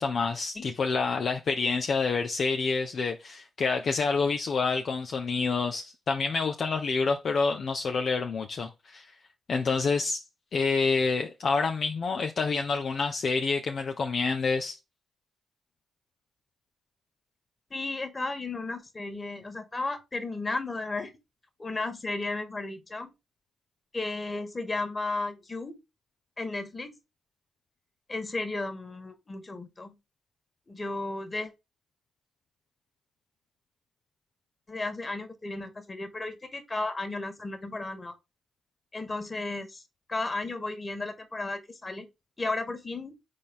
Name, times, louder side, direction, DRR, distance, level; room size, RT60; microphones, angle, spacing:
voice 1, 0.0-9.1 9.5-10.2 10.5-14.8, left 4 dB, 55° left, 0.7 m, -28 dB
voice 2, 17.7-21.1 21.6-23.1 23.9-25.8 26.4-27.0 28.1-30.0 30.7-31.5 34.7-38.1 38.9-39.8 40.1-42.1 42.4-43.2, left 2 dB, 30° left, 2.0 m, -34 dB
4.9 x 4.2 x 5.5 m
hypercardioid pair, 45°, 0 cm